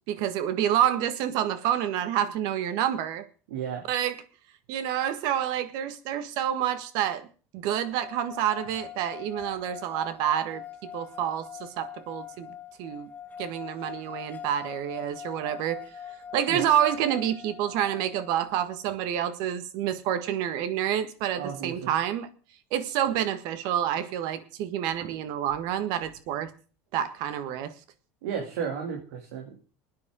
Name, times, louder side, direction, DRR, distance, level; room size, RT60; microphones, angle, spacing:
voice 1, 0.1-3.3 3.9-4.2 4.7-7.3 7.5-10.6 10.9-13.1 13.4-15.8 16.3-22.3 22.7-26.5 26.9-27.7, right 10 dB, 65° right, 12 dB, 1.6 m, -28 dB
voice 2, 3.5-3.8 16.5-16.6 21.3-21.9 28.2-29.5, right 7 dB, 85° right, 2 dB, 2.7 m, -33 dB
sound 1, 7.8-18.9, left 8 dB, 20° left, 1.4 m, -43 dB
20.5 x 9.6 x 3.8 m, 0.38 s
supercardioid pair, 115°, 7 cm